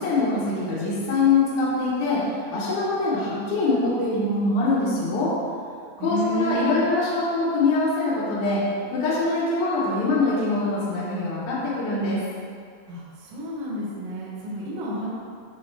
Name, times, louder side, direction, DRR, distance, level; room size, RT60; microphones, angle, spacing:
voice 1, 0.0-2.2 2.5-5.3 6.0-8.6 8.9-12.2, left 3 dB, 65° left, -8 dB, 2.1 m, -23 dB
voice 2, 6.0-6.8 12.9-15.1, equal, 65° right, -7 dB, 2.4 m, -31 dB
10.5 x 3.7 x 3.3 m, 2.2 s
omnidirectional pair, 5.2 m